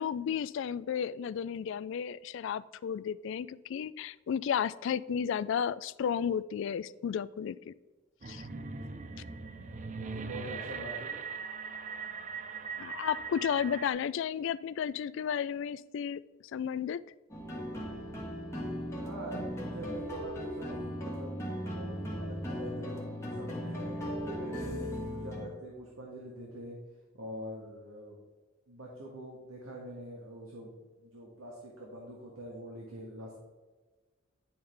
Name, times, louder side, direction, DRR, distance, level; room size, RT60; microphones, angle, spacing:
voice 1, 0.0-7.7 8.3-8.4 12.8-16.2 16.5-17.0, left 8 dB, 65° left, 17 dB, 0.3 m, -33 dB
sound 1, 8.2-13.9, right 5 dB, 40° right, 0.5 m, -40 dB
voice 2, 10.0-11.2 18.8-21.3 21.7-23.0 23.4-26.8 27.1-28.2 28.7-30.7 31.0-33.3, right 1 dB, 90° right, -2 dB, 1.5 m, -44 dB
sound 2, 17.3-25.5, equal, 15° left, 1.6 m, -37 dB
10.0 x 5.5 x 3.3 m, 1.3 s
head